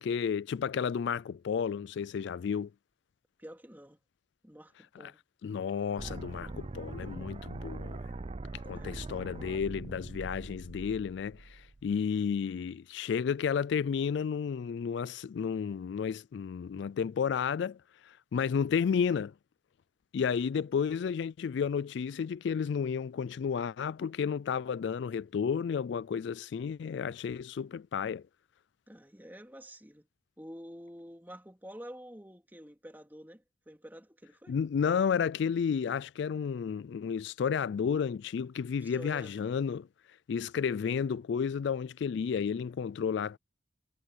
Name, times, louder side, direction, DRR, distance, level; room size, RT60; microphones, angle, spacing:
voice 1, 0.0-2.7 5.0-5.1 5.4-8.0 8.7-17.8 18.0-19.3 20.1-28.2 34.5-39.9 40.3-43.4, left 6 dB, 60° left, 0.3 m, -32 dB
voice 2, 3.4-4.0 4.4-5.2 8.7-9.0 28.9-30.1 30.4-34.6 38.7-39.6, equal, 10° right, 3.5 m, -49 dB
sound 1, 6.0-12.0, right 3 dB, 30° right, 0.4 m, -42 dB
head